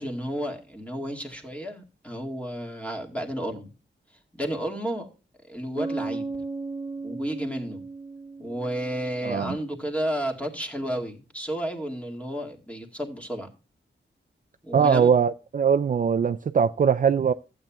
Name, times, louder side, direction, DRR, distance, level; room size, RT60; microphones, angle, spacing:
voice 1, 0.0-3.7 4.3-5.1 5.4-6.3 7.0-7.9 8.4-13.5 14.6-15.1, equal, 5° left, 2.1 m, -32 dB
Bass guitar, 5.8-9.4, right 3 dB, 25° right, 1.0 m, -35 dB
voice 2, 9.2-9.6 14.7-17.3, right 7 dB, 45° right, 0.4 m, -21 dB
15.0 x 8.8 x 2.3 m
wide cardioid pair, 135°, 19 cm